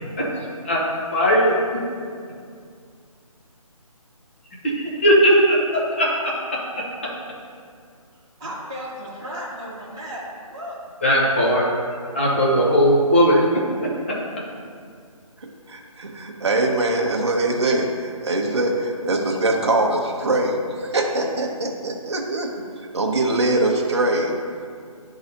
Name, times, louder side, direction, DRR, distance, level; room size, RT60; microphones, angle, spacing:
voice 1, 1.1-1.5 5.0-5.5 6.0-6.1 6.8-6.9 11.0-11.7 12.1-13.6 14.1-14.2, equal, 20° left, -5 dB, 0.9 m, -17 dB
voice 2, 8.4-10.7, equal, 5° right, -14 dB, 0.8 m, -34 dB
voice 3, 15.4-20.6 20.9-22.5 22.9-24.3, right 2 dB, 50° right, 1 dB, 0.9 m, -22 dB
10.5 x 3.9 x 2.8 m, 2.2 s
figure-of-eight pair, 170°, 19 cm